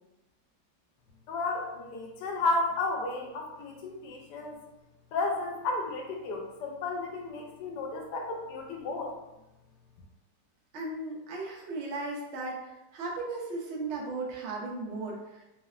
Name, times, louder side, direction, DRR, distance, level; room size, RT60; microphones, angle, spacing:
voice 1, 1.3-4.6 5.1-9.1, left 3 dB, 75° left, 1 dB, 1.2 m, -33 dB
voice 2, 10.7-15.4, right 3 dB, 75° right, -3 dB, 0.6 m, -36 dB
3.2 x 2.1 x 2.3 m, 0.97 s
omnidirectional pair, 1.9 m